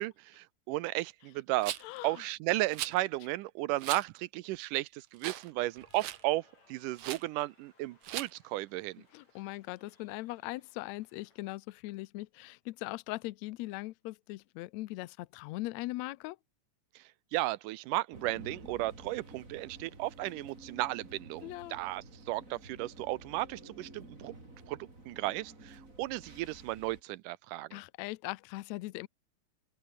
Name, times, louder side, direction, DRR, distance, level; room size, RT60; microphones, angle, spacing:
voice 1, 0.0-1.7 2.0-9.0 17.3-24.4 24.7-27.8, right 18 dB, 85° right, 2.2 m, -34 dB
Rattle, 1.6-2.0 2.7-3.0 3.8-4.0 4.5-4.6 5.2-5.5 5.8-6.2 7.0-7.2 8.0-8.3, right 12 dB, 65° right, 2.4 m, -38 dB
voice 2, 1.8-2.2 9.1-16.4 21.4-21.8 27.7-29.1, left 19 dB, 80° left, 1.6 m, -40 dB
Cheering / Applause, 5.2-11.5, left 3 dB, 55° left, 9.3 m, -67 dB
sound 1, 18.1-27.0, right 2 dB, 25° right, 5.9 m, -51 dB
open air
omnidirectional pair, 3.7 m